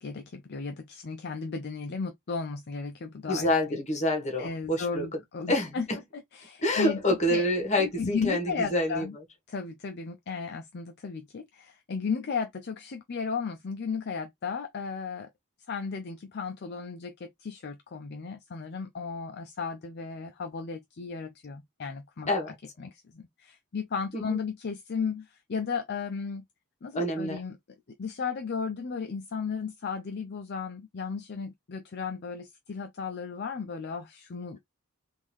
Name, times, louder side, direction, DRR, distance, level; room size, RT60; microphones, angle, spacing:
voice 1, 0.0-3.8 4.4-5.8 6.1-7.0 7.3-7.4 7.8-9.1 9.5-15.3 15.7-22.3 22.8-26.4 26.8-27.6 28.0-34.6, left 5 dB, 50° left, 0.5 m, -35 dB
voice 2, 3.3-5.0 5.5-5.8 6.6-9.1 22.3-22.6 24.1-24.4 26.9-27.4, left 1 dB, 30° left, 1.2 m, -27 dB
3.7 x 2.6 x 3.1 m
head